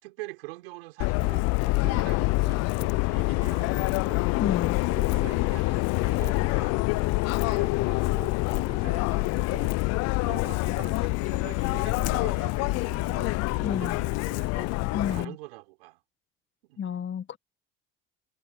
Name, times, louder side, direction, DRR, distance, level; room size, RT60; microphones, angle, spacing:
voice 1, 0.0-4.3 4.9-9.8 10.2-16.0 16.6-16.8, right 21 dB, 80° right, 5.1 m, -45 dB
Subway metro underground, 1.0-15.2, left 24 dB, 60° left, 0.5 m, -26 dB
voice 2, 4.4-4.8 13.6-14.0 14.9-15.3 16.8-17.4, left 8 dB, 40° left, 1.8 m, -31 dB
hypercardioid pair, 70°, 29 cm